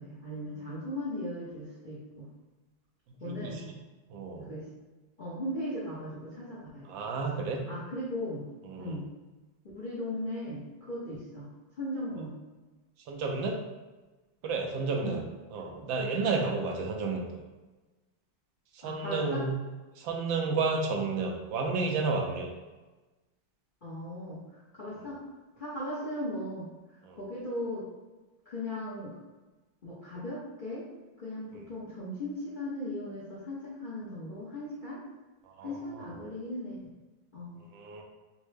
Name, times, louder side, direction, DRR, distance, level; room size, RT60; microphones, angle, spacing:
voice 1, 0.0-2.2 3.2-3.6 4.5-4.6 5.2-7.0 7.7-8.4 8.8-9.0 9.7-11.5 11.8-12.3 15.0-15.2 18.8-19.4 23.8-25.2 25.6-26.7 27.2-27.9 28.4-29.1 29.8-30.8 31.2-35.0 35.6-36.9 37.3-37.6, left 1 dB, 45° left, -9 dB, 0.6 m, -37 dB
voice 2, 3.2-3.6 4.1-4.5 6.9-7.7 8.7-9.0 13.1-13.6 14.4-15.2 15.5-17.4 18.8-19.6 20.0-22.5 27.1-27.2 35.6-35.8 37.7-38.0, right 4 dB, 80° right, 1 dB, 1.3 m, -31 dB
5.1 x 2.1 x 3.2 m, 1.2 s
omnidirectional pair, 2.1 m